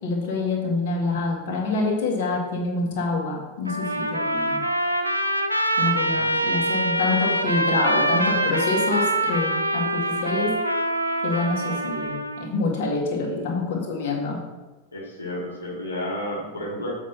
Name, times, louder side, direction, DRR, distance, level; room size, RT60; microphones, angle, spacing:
voice 1, 0.0-4.6 5.8-10.5 11.2-14.4, left 3 dB, 50° left, -1 dB, 2.0 m, -26 dB
Trumpet, 3.7-12.5, right 1 dB, 85° right, 0.6 m, -24 dB
voice 2, 13.2-13.6 14.9-16.9, left 1 dB, 80° left, -4 dB, 1.7 m, -32 dB
7.4 x 5.2 x 5.7 m, 1.2 s
figure-of-eight pair, 90°, 0 cm